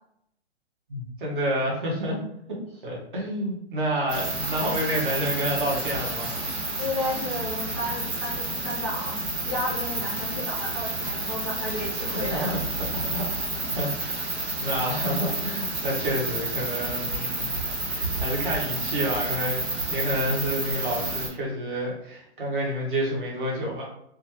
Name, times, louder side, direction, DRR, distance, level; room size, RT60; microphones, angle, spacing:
voice 1, 0.9-2.2 2.8-6.3 12.1-12.6 13.0-13.3 13.5-14.3 14.6-17.5 17.8-23.8, equal, 45° right, -3 dB, 1.1 m, -29 dB
sound 1, 4.1-21.3, right 2 dB, 65° right, 1.3 m, -30 dB
voice 2, 6.8-9.2 9.4-12.6, left 1 dB, 25° left, -7 dB, 0.4 m, -32 dB
2.6 x 2.4 x 2.9 m, 0.75 s
hypercardioid pair, 175°, 34 cm